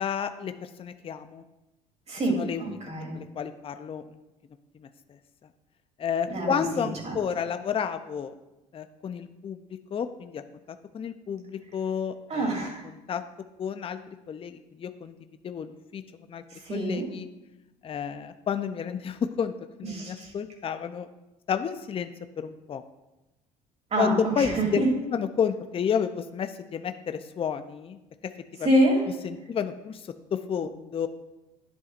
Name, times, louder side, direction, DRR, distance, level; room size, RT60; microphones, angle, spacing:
voice 1, 0.0-1.4 2.3-2.7 3.1-4.2 4.8-5.2 6.0-8.4 8.7-9.6 9.9-10.4 10.9-12.5 12.8-13.2 13.6-15.2 15.4-16.0 16.3-16.4 16.7-17.3 17.8-19.5 19.8-21.1 21.5-22.1 22.4-22.8 24.0-28.0 28.5-28.7 29.2-31.1, left 7 dB, 35° left, 9 dB, 0.5 m, -31 dB
voice 2, 2.1-3.2 6.3-6.6 7.0-7.1 12.3-12.8 16.7-17.1 19.9-20.3 23.9-24.1 24.4-24.9 28.6-29.0, right 1 dB, 40° right, 0 dB, 3.0 m, -26 dB
10.5 x 8.0 x 2.5 m, 1.0 s
supercardioid pair, 75°, 17 cm